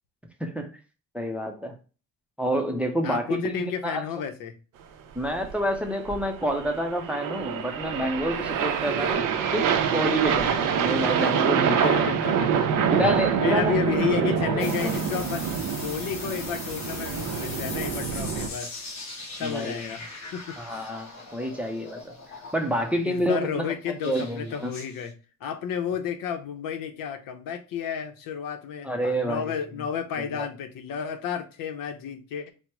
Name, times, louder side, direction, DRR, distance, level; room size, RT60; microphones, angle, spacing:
voice 1, 1.1-1.8 2.4-4.0 5.2-9.2 9.5-12.1 12.9-14.9 19.4-19.8 20.6-22.1 22.5-23.6 24.0-24.7 28.8-29.6 30.2-30.5, equal, 5° right, 0.5 m, -28 dB
voice 2, 3.0-4.5 11.7-13.1 13.4-15.5 15.8-18.7 19.4-20.0 20.3-20.9 23.0-25.1 25.4-32.5, left 7 dB, 85° left, 0.9 m, -32 dB
sound 1, 5.2-18.5, right 7 dB, 75° right, 0.7 m, -26 dB
sound 2, 14.6-23.0 24.0-25.1, left 3 dB, 55° left, 1.1 m, -40 dB
4.5 x 2.1 x 4.4 m
cardioid pair, 160°, 33 cm